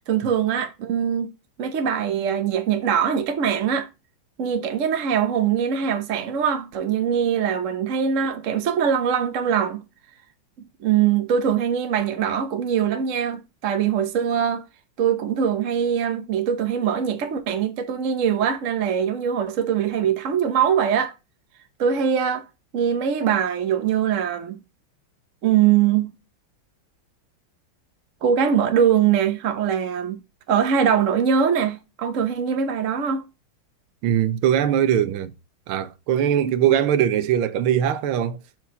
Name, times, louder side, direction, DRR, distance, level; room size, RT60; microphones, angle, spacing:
voice 1, 0.1-1.3 1.6-3.9 4.4-9.8 10.8-14.6 15.0-21.1 21.8-22.5 22.7-24.6 25.4-26.1 28.2-30.2 30.5-33.3, right 8 dB, 60° right, 0.8 m, -22 dB
voice 2, 34.0-35.3 35.7-38.4, right 10 dB, 80° right, 1.5 m, -21 dB
6.1 x 4.6 x 5.5 m
omnidirectional pair, 2.3 m